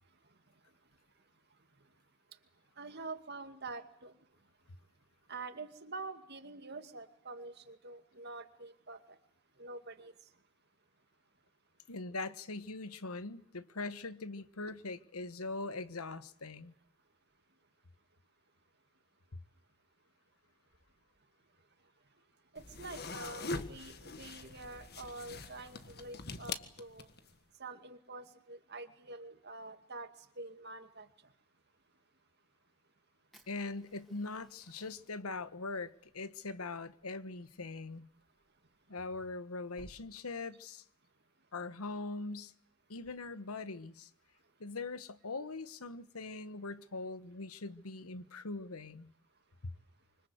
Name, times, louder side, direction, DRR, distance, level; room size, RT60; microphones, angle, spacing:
voice 1, 2.8-4.1 5.3-9.0 9.6-10.1 22.5-27.1 27.6-30.1 30.4-31.1, right 3 dB, 50° right, 2.3 m, -46 dB
voice 2, 11.9-16.7 33.5-38.1 38.9-40.8 41.5-42.5 42.9-44.1 44.6-49.1 49.6-49.7, left 3 dB, 90° left, 1.3 m, -42 dB
sound 1, 22.6-27.3, left 3 dB, 45° left, 1.7 m, -43 dB
Fire, 33.3-40.0, equal, ahead, 3.5 m, -64 dB
26.0 x 25.0 x 8.0 m
head